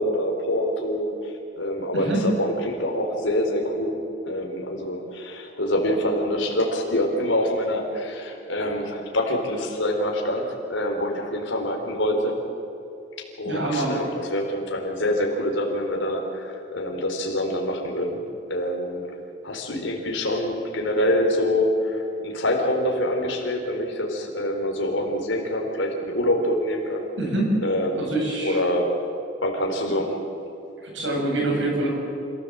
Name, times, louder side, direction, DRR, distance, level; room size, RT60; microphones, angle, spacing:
voice 1, 0.0-4.0 4.3-12.4 13.4-18.2 18.5-19.1 19.4-27.0 27.6-28.1 28.4-28.9 29.4-30.2, left 1 dB, 75° left, 1 dB, 4.1 m, -25 dB
voice 2, 13.4-13.9 27.2-27.6 28.0-28.6 29.9-30.0 30.8-31.9, right 2 dB, 75° right, -1 dB, 6.8 m, -25 dB
27.5 x 16.0 x 7.9 m, 2.8 s
head